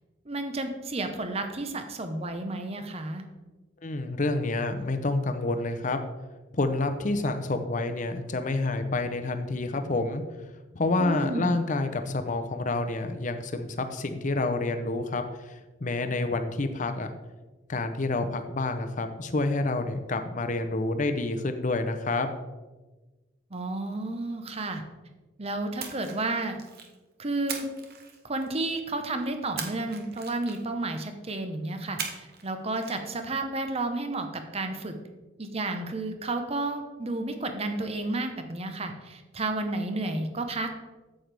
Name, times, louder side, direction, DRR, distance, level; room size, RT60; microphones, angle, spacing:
voice 1, 0.3-3.2 11.0-11.6 23.5-24.8 25.4-26.6 27.2-27.7 28.2-34.9 35.4-40.7, right 2 dB, 30° right, 7 dB, 0.8 m, -31 dB
voice 2, 3.8-6.0 6.5-10.2 10.7-17.1 17.7-22.3, left 2 dB, 40° left, 8 dB, 0.7 m, -28 dB
Splash splatter, 25.8-27.0 27.5-28.7 29.6-30.8 32.0-32.5 32.7-33.0, right 6 dB, 55° right, 1.1 m, -38 dB
9.0 x 7.7 x 3.4 m, 1.2 s
head